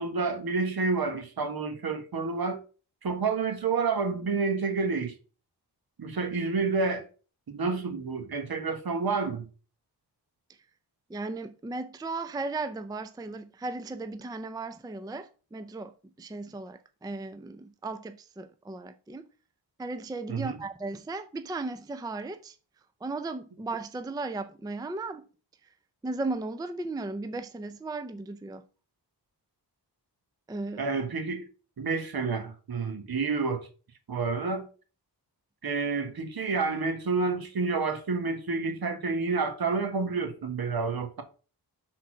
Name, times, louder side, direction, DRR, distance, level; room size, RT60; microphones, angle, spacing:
voice 1, 0.0-2.6 3.0-5.1 6.0-7.0 7.5-9.5 20.3-20.6 30.8-31.4 31.8-33.7 34.1-34.6 35.6-41.2, right 4 dB, 60° right, 1.5 m, -29 dB
voice 2, 11.1-19.3 19.8-22.6 23.0-25.3 26.0-28.6 30.5-30.8, right 3 dB, 10° right, 0.4 m, -36 dB
6.3 x 4.2 x 6.2 m
wide cardioid pair, 125°, 41 cm